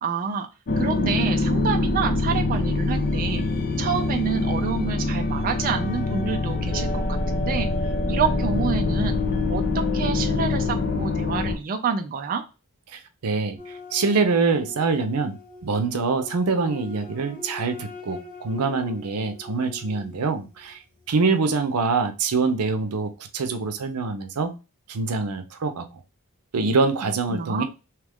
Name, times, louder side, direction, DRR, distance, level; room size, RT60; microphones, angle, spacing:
voice 1, 0.0-0.5 0.8-3.4 3.8-7.7 8.1-9.2 9.5-12.4 27.0-27.6, right 5 dB, 40° right, 5 dB, 0.3 m, -28 dB
sound 1, 0.7-11.6, left 2 dB, 45° left, 0.5 m, -24 dB
voice 2, 12.9-15.4 15.6-20.8 21.1-24.5 24.9-25.9 26.5-27.6, right 4 dB, 85° right, 7 dB, 0.6 m, -25 dB
sound 2, 13.6-21.1, left 4 dB, 30° left, 1.7 m, -43 dB
3.0 x 2.4 x 3.5 m, 0.29 s
head